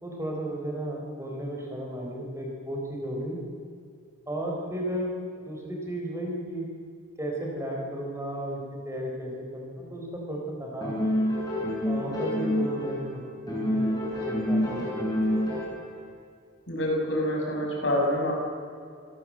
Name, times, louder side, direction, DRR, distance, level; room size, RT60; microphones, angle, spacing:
voice 1, 0.0-3.4 4.3-5.2 5.4-6.7 7.2-11.0 11.8-14.0 14.3-14.8, right 1 dB, 15° right, -1 dB, 4.3 m, -34 dB
sound 1, 10.8-13.1 13.5-15.9, left 1 dB, 20° left, 7.5 m, -27 dB
voice 2, 16.7-18.3, left 1 dB, 60° left, -1 dB, 6.5 m, -26 dB
26.5 x 17.5 x 7.7 m, 2.4 s
head